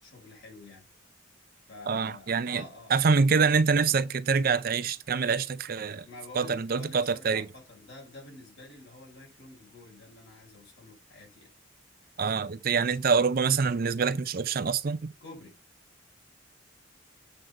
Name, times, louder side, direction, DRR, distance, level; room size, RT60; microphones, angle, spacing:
voice 1, 0.0-0.9 1.7-3.2 6.0-11.5 12.7-12.8 15.2-15.6, left 2 dB, 60° left, 4.5 m, -48 dB
voice 2, 1.9-2.6 2.9-6.1 6.4-7.5 12.2-15.1, right 5 dB, 45° right, 0.5 m, -25 dB
7.8 x 4.0 x 5.8 m
head